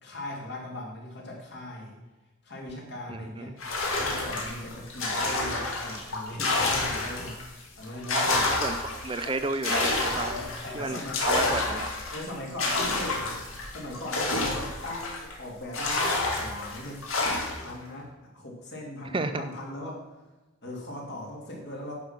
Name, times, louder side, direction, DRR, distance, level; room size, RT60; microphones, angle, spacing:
voice 1, 0.0-2.0 2.4-3.5 4.0-8.5 9.2-9.4 10.1-11.6 12.1-13.4 13.7-17.0 17.6-20.0 20.6-21.9, left 1 dB, 55° left, -2 dB, 2.7 m, -39 dB
voice 2, 3.1-3.5 8.1-10.3 10.7-11.9 19.1-19.5, right 3 dB, 25° right, 10 dB, 0.4 m, -32 dB
sound 1, 3.6-7.4 7.8-15.3 15.7-17.7, left 2 dB, 80° left, 2.3 m, -29 dB
10.5 x 5.9 x 5.9 m, 1.1 s
head